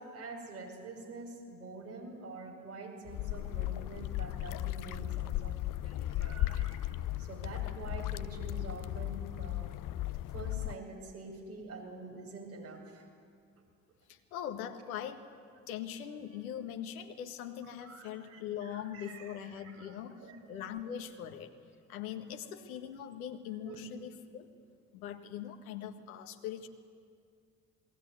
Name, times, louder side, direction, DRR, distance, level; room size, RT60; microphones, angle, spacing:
voice 1, 0.0-5.6 5.8-9.7 10.3-13.0 17.6-20.6 23.6-23.7, right 3 dB, 85° right, -3 dB, 6.2 m, -47 dB
sound 1, 3.1-10.8, left 15 dB, 50° left, 0.6 m, -36 dB
voice 2, 14.1-15.3 15.7-20.2 20.5-21.5 21.9-24.5 24.9-26.7, left 9 dB, 80° left, 5 dB, 1.7 m, -41 dB
28.0 x 20.5 x 9.5 m, 2.2 s
hypercardioid pair, 50°, 42 cm